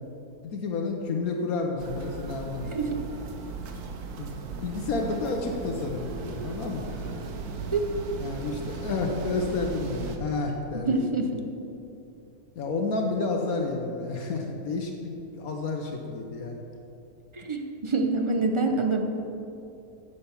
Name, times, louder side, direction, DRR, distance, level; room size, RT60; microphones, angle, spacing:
voice 1, 0.4-2.8 4.2-4.4 4.6-7.2 8.2-11.1 12.6-16.6, left 3 dB, 75° left, 2 dB, 1.4 m, -30 dB
sound 1, 1.8-10.2, right 4 dB, 90° right, 1.4 m, -37 dB
voice 2, 10.7-11.4 17.3-19.0, right 3 dB, 35° right, 4 dB, 0.5 m, -26 dB
9.9 x 7.0 x 6.9 m, 2.7 s
omnidirectional pair, 1.6 m